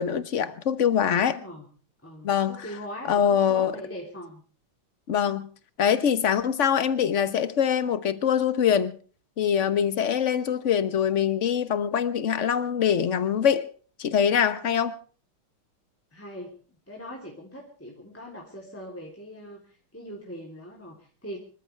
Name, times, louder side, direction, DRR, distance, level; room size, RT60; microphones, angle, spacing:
voice 1, 0.0-1.4 2.2-2.6 3.1-3.7 5.1-5.5 5.8-9.0 9.4-13.7 14.0-15.0, left 8 dB, 45° left, 1.2 m, -23 dB
voice 2, 1.0-1.6 2.0-4.4 16.1-16.5 16.9-21.4, equal, 5° left, 3.3 m, -41 dB
25.5 x 14.0 x 3.4 m
omnidirectional pair, 2.3 m